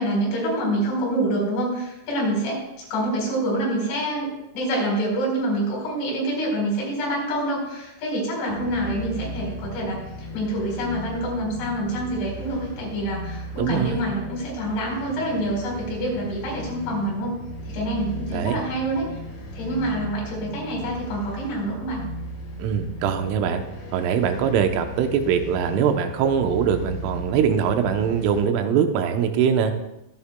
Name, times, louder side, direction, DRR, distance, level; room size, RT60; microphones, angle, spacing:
voice 1, 0.0-10.0 10.3-17.3 17.6-19.0 19.5-22.0, right 1 dB, 65° left, -3 dB, 6.5 m, -26 dB
sound 1, 8.5-28.4, equal, 45° left, 3.7 m, -36 dB
voice 2, 13.5-14.0 18.3-18.6 22.6-23.6 23.9-29.7, right 7 dB, 80° right, 6 dB, 3.3 m, -22 dB
23.0 x 8.9 x 2.3 m, 0.90 s
omnidirectional pair, 5.7 m